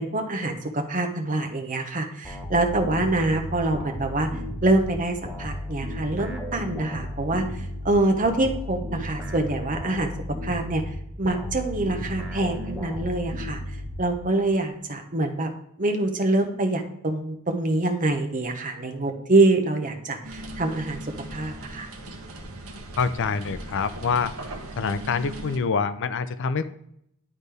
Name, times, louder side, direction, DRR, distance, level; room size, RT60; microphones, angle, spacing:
voice 1, 0.0-4.3 4.6-10.1 10.4-10.8 11.2-13.6 14.0-15.5 15.8-21.9, right 2 dB, 40° right, 4 dB, 1.1 m, -25 dB
sound 1, 2.2-14.4, equal, 5° right, 1.2 m, -34 dB
sound 2, 20.2-25.6, right 1 dB, 75° right, 1.2 m, -39 dB
voice 2, 23.0-24.3 24.8-26.7, left 5 dB, 60° left, 13 dB, 0.5 m, -26 dB
11.0 x 4.1 x 3.4 m, 0.74 s
head